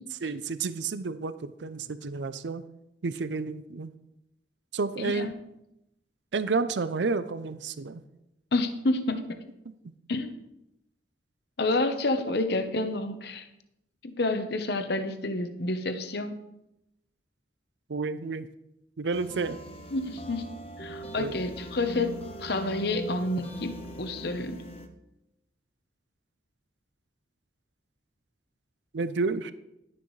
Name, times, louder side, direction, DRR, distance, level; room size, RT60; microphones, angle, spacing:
voice 1, 0.2-2.6 3.0-3.9 4.7-5.3 6.3-8.0 17.9-18.5 19.0-19.6 21.2-21.4 28.9-29.5, right 4 dB, 70° right, 13 dB, 0.5 m, -30 dB
voice 2, 5.0-5.3 8.5-9.4 10.1-10.4 11.6-13.5 14.0-16.4 19.9-24.6, left 2 dB, 60° left, 9 dB, 1.0 m, -29 dB
sound 1, 19.1-24.9, equal, 35° left, 1.0 m, -41 dB
12.0 x 10.5 x 3.2 m, 0.86 s
head